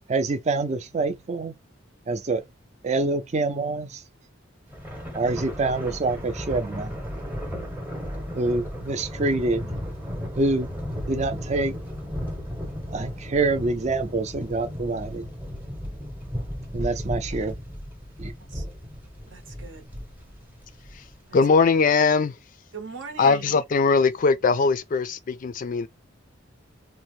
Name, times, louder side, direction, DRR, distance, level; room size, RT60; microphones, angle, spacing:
voice 1, 0.1-1.5 2.1-2.4 2.8-4.0 5.1-6.9 8.4-9.7 10.3-10.7 11.1-11.8 12.9-15.3 16.7-17.5 18.2-18.3, right 3 dB, 35° right, 0.4 m, -26 dB
Thunder, 4.7-21.3, equal, 10° right, 0.8 m, -35 dB
voice 2, 19.3-19.9 22.7-23.4, right 5 dB, 65° right, 0.8 m, -39 dB
voice 3, 21.3-22.4 23.2-25.9, left 4 dB, 45° left, 0.3 m, -20 dB
2.7 x 2.1 x 3.0 m
head